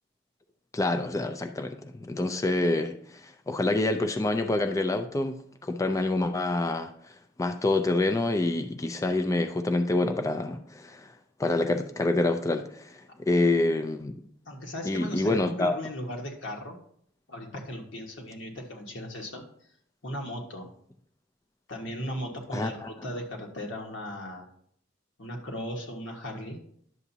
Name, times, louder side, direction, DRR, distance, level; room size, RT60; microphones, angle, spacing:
voice 1, 0.7-5.4 5.6-6.9 7.4-11.1 11.4-14.1 14.9-15.8 22.5-22.9, left 2 dB, 15° left, 0.4 m, -27 dB
voice 2, 14.4-16.8 17.3-19.4 20.0-20.7 21.7-24.5 25.2-26.6, equal, 75° left, 1.6 m, -37 dB
11.0 x 7.0 x 2.8 m
head